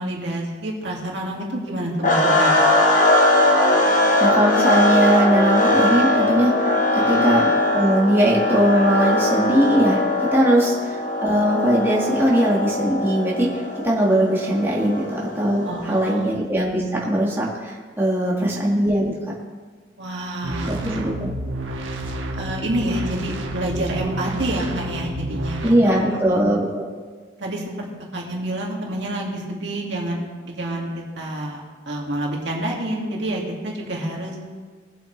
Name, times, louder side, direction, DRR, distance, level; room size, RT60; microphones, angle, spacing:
voice 1, 0.0-2.7 7.0-7.2 15.6-16.3 18.4-18.5 20.0-21.1 22.4-26.2 27.4-30.2 30.6-31.6 31.9-34.4, right 1 dB, 70° right, -1 dB, 2.2 m, -28 dB
sound 1, 2.0-16.1, left 1 dB, 40° left, 1.2 m, -20 dB
voice 2, 4.2-19.1 20.6-21.3 25.6-26.9, equal, 10° right, -4 dB, 1.7 m, -20 dB
sound 2, 20.4-25.7, right 1 dB, 85° right, 1.3 m, -29 dB
21.0 x 7.9 x 3.3 m, 1.5 s
head